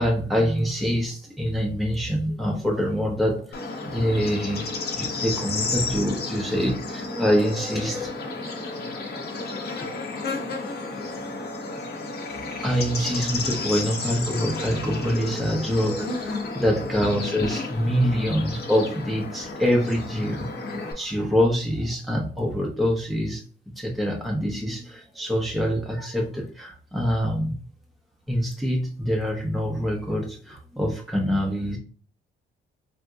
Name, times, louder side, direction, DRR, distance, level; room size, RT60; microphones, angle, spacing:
voice 1, 0.0-4.7 4.9-8.1 10.9-11.0 12.5-23.4 23.8-27.6 28.3-31.8, equal, ahead, -1 dB, 0.7 m, -25 dB
Bird / Insect, 3.5-20.9, left 3 dB, 55° left, 0.9 m, -32 dB
3.6 x 2.7 x 2.3 m, 0.40 s
cardioid pair, 90°, 20 cm